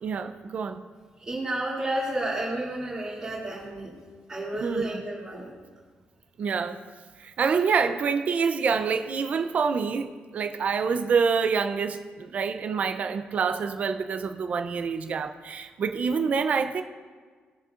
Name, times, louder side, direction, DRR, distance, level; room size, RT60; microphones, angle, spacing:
voice 1, 0.0-0.8 4.6-5.0 6.4-6.8 7.2-16.8, right 5 dB, 40° right, 7 dB, 0.5 m, -27 dB
voice 2, 1.3-3.9 4.3-5.5, right 1 dB, 25° right, -11 dB, 2.5 m, -31 dB
19.5 x 6.6 x 2.5 m, 1.5 s
wide cardioid pair, 180°, 4 cm